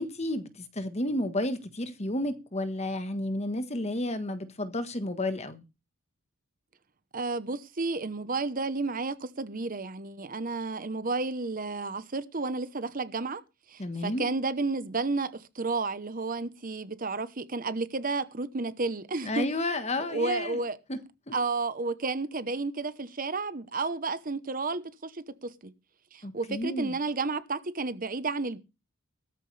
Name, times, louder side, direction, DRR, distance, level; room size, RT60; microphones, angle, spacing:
voice 1, 0.0-5.6 13.8-14.3 19.2-20.6 20.9-21.0 21.3-21.4 26.2-27.0, left 1 dB, 30° left, 1.4 m, -31 dB
voice 2, 7.1-13.4 13.7-19.5 20.1-20.8 21.3-25.7 26.1-28.6, right 3 dB, 40° right, 1.0 m, -32 dB
16.5 x 13.5 x 3.4 m
head